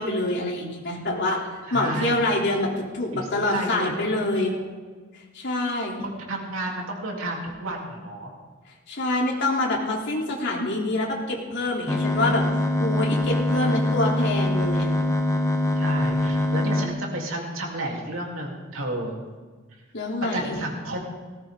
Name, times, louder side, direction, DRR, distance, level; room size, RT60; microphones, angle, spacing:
voice 1, 0.0-4.5 5.3-6.0 8.9-12.4 12.8-14.9 19.9-20.6, left 2 dB, 60° left, -2 dB, 3.4 m, -26 dB
voice 2, 1.7-2.2 3.1-4.7 6.0-8.3 13.5-13.8 15.8-19.2 20.3-21.0, right 1 dB, 75° right, -1 dB, 3.6 m, -32 dB
sound 1, 11.9-16.9, left 1 dB, 15° left, 1.2 m, -23 dB
18.5 x 17.0 x 3.9 m, 1.4 s
head